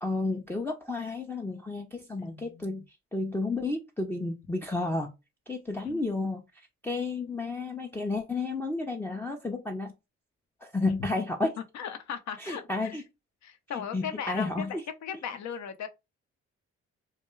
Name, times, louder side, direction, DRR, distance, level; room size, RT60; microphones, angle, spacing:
voice 1, 0.0-2.8 3.1-5.1 5.5-9.9 10.6-11.5 12.4-13.0 13.7-14.8, left 3 dB, 5° left, 0.4 m, -32 dB
voice 2, 2.2-2.7 5.8-6.1 11.7-13.0 13.4-15.9, left 8 dB, 60° left, 0.6 m, -38 dB
2.3 x 2.2 x 3.0 m
supercardioid pair, 50°, 31 cm